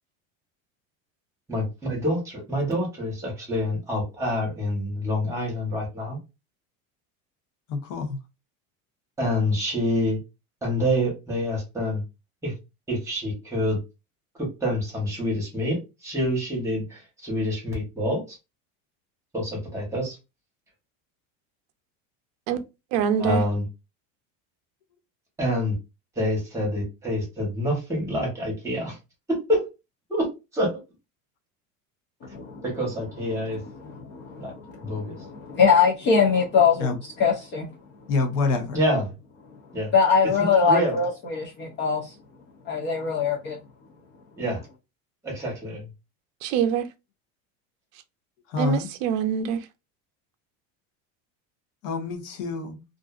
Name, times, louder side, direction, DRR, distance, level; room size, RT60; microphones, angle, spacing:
voice 1, 1.5-6.2 9.2-10.2 10.6-12.0 12.4-12.5 12.9-13.8 14.4-18.4 19.3-20.2 23.2-23.6 25.4-25.7 26.2-29.0 29.3-29.7 30.1-30.3 30.5-30.7 32.6-33.6 34.4-34.5 34.8-35.1 38.7-39.1 39.7-39.9 40.5-41.0 44.4-44.6 45.2-45.9, equal, 10° right, 0.9 m, -27 dB
voice 2, 7.7-8.2 36.8-37.0 38.1-38.8 48.5-48.9 51.8-52.8, left 4 dB, 60° left, 0.8 m, -27 dB
voice 3, 22.9-23.4 46.4-46.9 48.6-49.6, right 8 dB, 80° right, 0.6 m, -24 dB
voice 4, 33.8-37.7 39.9-42.1 42.7-43.6, left 6 dB, 30° left, 0.4 m, -22 dB
2.5 x 2.4 x 2.3 m
cardioid pair, 165°, 39 cm